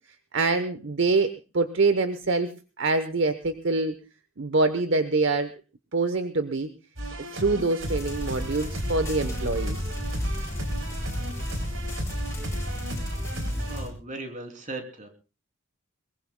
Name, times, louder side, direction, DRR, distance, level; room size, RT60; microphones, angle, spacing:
voice 1, 0.3-4.0 4.4-5.5 5.9-6.7 7.3-9.8, right 3 dB, 60° right, 10 dB, 0.9 m, -25 dB
sound 1, 7.0-13.8, right 1 dB, 80° right, 4.2 m, -35 dB
sound 2, 7.8-13.9, equal, 15° left, 6.5 m, -32 dB
voice 2, 13.7-15.1, right 2 dB, 35° right, 4 dB, 3.0 m, -37 dB
22.5 x 22.0 x 2.2 m, 0.32 s
head